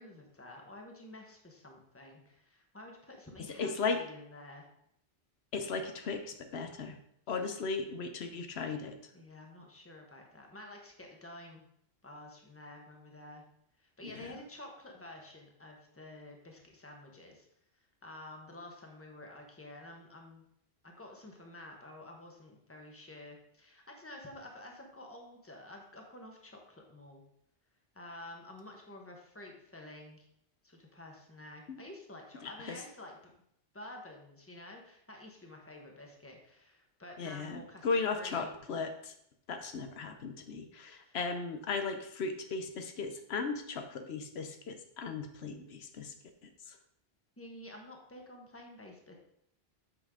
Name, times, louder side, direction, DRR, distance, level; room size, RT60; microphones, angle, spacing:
voice 1, 0.0-4.7 9.1-11.6 12.0-13.4 13.8-17.5 18.0-20.5 20.8-27.2 27.9-30.3 30.6-33.3 33.7-37.9 38.2-38.5 41.0-41.2 47.4-49.1, left 1 dB, 15° left, 1 dB, 1.1 m, -50 dB
voice 2, 3.6-4.0 5.5-7.0 7.3-9.0 14.0-14.4 31.7-31.8 32.4-32.8 37.2-39.1 39.5-46.1 46.4-46.8, left 4 dB, 85° left, 6 dB, 1.0 m, -36 dB
7.9 x 5.5 x 3.7 m, 0.72 s
omnidirectional pair, 1.1 m